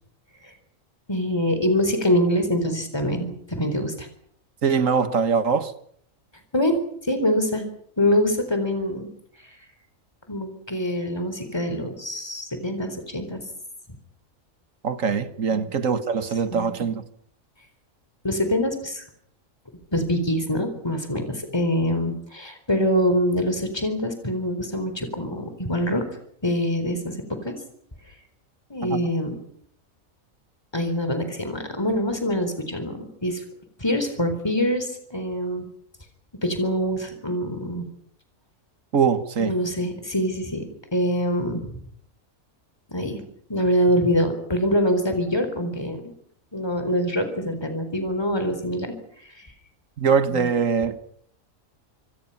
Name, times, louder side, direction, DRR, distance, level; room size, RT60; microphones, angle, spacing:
voice 1, 1.1-4.1 6.5-6.8 7.1-7.6 8.0-9.1 10.3-13.4 15.5-15.7 16.5-16.7 18.2-19.0 19.9-26.0 26.4-27.1 27.4-27.6 28.7-29.4 30.7-33.4 33.8-35.6 36.4-37.9 39.4-40.6 40.9-41.7 42.9-43.2 43.5-46.1 46.5-48.9 49.2-49.5 50.3-50.5, equal, 20° left, 4.1 m, -24 dB
voice 2, 4.6-5.7 14.8-17.0 28.9-29.0 38.9-39.6 50.0-51.0, right 6 dB, 70° right, 1.8 m, -22 dB
26.5 x 26.0 x 5.7 m
omnidirectional pair, 1.4 m